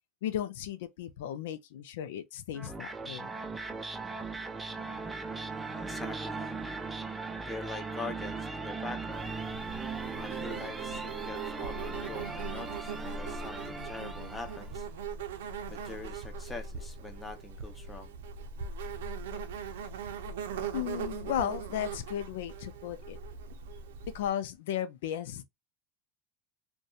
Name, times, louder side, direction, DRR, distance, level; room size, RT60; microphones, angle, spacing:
voice 1, 0.2-3.3 20.7-23.2 24.1-25.4, left 10 dB, 80° left, 0.4 m, -35 dB
sound 1, 2.5-14.8, right 4 dB, 10° right, 0.5 m, -39 dB
Bowed string instrument, 4.7-11.8, right 1 dB, 30° right, 1.0 m, -48 dB
voice 2, 5.9-6.5 7.4-9.4 10.2-14.9 15.7-18.1, left 3 dB, 15° left, 0.7 m, -43 dB
Insect, 9.1-24.3, right 5 dB, 85° right, 0.5 m, -40 dB
2.7 x 2.2 x 2.4 m
hypercardioid pair, 95°, 0 cm